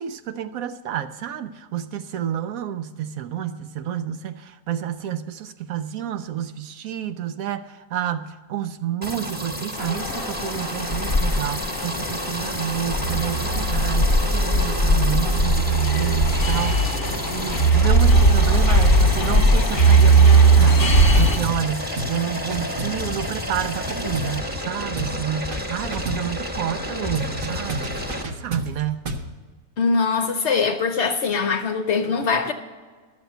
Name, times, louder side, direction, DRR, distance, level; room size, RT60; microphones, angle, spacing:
voice 1, 0.0-16.8 17.3-29.1, right 10 dB, 70° right, 10 dB, 0.9 m, -29 dB
sound 1, 9.0-28.2, left 1 dB, 5° right, 1.1 m, -30 dB
sound 2, 9.8-21.4, right 2 dB, 40° left, 1.1 m, -18 dB
sound 3, 20.6-20.9 21.1-21.7 22.0-22.2 22.5-24.7 25.0-25.2 25.5-26.3 27.1-29.3, right 2 dB, 45° right, 0.8 m, -32 dB
voice 2, 29.8-32.5, left 5 dB, 55° left, 7 dB, 0.8 m, -22 dB
12.0 x 7.1 x 7.9 m, 1.4 s
omnidirectional pair, 1.7 m